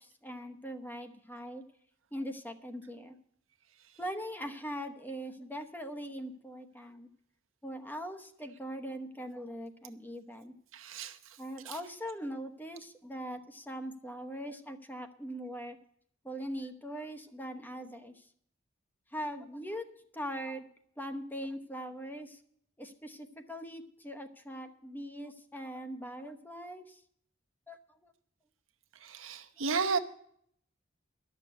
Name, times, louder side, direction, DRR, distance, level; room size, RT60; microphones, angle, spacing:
voice 1, 0.0-1.6 2.1-3.2 4.0-7.1 7.6-10.5 11.4-15.8 16.2-18.3 19.1-19.8 20.1-20.6 21.0-22.4 22.8-27.0 27.7-28.1, equal, 10° left, 6 dB, 1.0 m, -41 dB
voice 2, 10.7-11.8 28.9-30.0, right 5 dB, 80° right, 8 dB, 1.0 m, -34 dB
12.0 x 6.7 x 9.3 m, 0.65 s
head